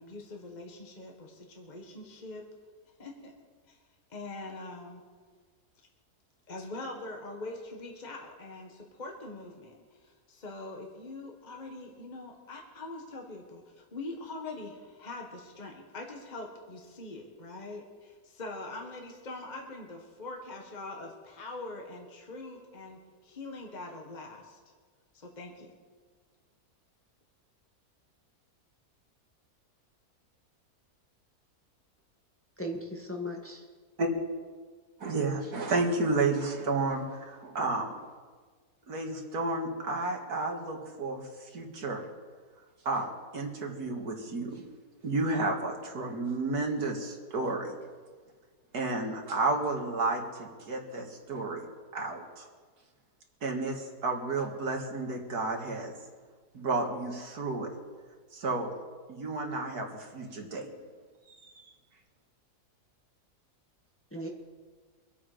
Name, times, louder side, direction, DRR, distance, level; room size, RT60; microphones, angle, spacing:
voice 1, 0.0-2.4 3.0-3.3 3.7-3.8 4.1-5.0 6.5-24.6 25.1-25.8, left 2 dB, 30° left, 1 dB, 1.6 m, -43 dB
voice 2, 32.6-33.6 64.1-64.3, equal, 10° left, 0 dB, 1.6 m, -37 dB
voice 3, 35.0-37.9 38.9-42.0 42.9-44.6 45.0-47.8 48.7-51.6 51.9-52.5 53.4-55.9 56.5-57.7 58.3-58.7 59.1-60.7 61.3-61.7, right 3 dB, 75° right, 2 dB, 2.4 m, -32 dB
24.5 x 8.5 x 5.1 m, 1.5 s
omnidirectional pair, 1.7 m